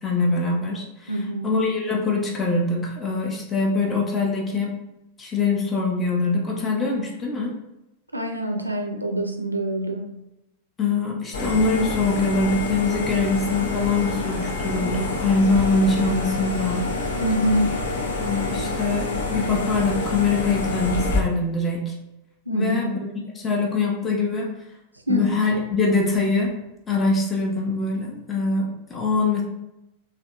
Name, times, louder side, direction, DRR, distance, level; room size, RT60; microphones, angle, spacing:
voice 1, 0.0-4.7 5.2-7.5 10.8-16.8 18.2-21.9 22.5-23.0 23.3-24.5 25.1-26.5 26.9-29.4, left 3 dB, 20° left, -1 dB, 0.5 m, -23 dB
voice 2, 1.1-1.5 8.1-10.1 17.2-17.7 22.5-22.9 25.1-25.3, equal, 85° right, 4 dB, 0.3 m, -25 dB
sound 1, 11.3-21.2, left 2 dB, 65° left, 0.5 m, -27 dB
3.4 x 2.2 x 2.4 m, 0.90 s
figure-of-eight pair, 90°, 0 cm